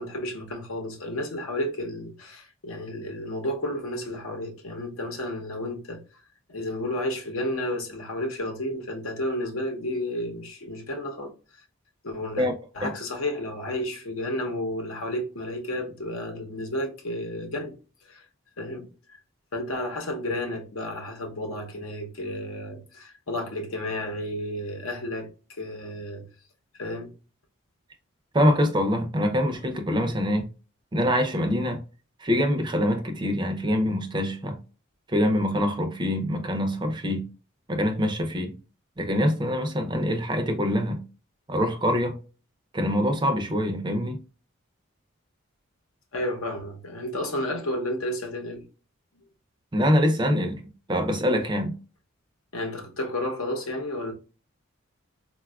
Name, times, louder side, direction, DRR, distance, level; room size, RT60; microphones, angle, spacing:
voice 1, 0.0-6.0 6.5-11.3 12.0-12.5 12.7-17.7 18.1-18.2 18.6-18.9 19.5-26.2 26.8-27.1 46.1-48.6 52.5-54.1, left 1 dB, 80° left, 0.8 m, -32 dB
voice 2, 28.3-30.5 30.9-31.8 32.2-34.6 35.1-37.2 37.7-38.5 39.0-41.0 41.5-42.2 42.7-44.2 49.7-50.6 50.9-51.7, equal, 20° right, 0.4 m, -24 dB
4.0 x 2.3 x 2.3 m
head